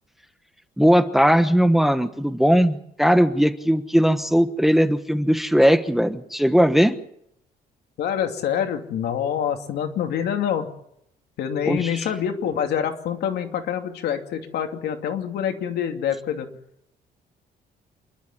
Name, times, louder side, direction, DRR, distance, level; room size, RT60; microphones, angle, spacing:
voice 1, 0.8-7.0 11.7-12.0, equal, ahead, 10 dB, 1.2 m, -19 dB
voice 2, 8.0-10.7 11.4-16.5, left 8 dB, 80° left, 5 dB, 2.7 m, -26 dB
28.0 x 12.0 x 9.9 m, 0.76 s
cardioid pair, 135°, 17 cm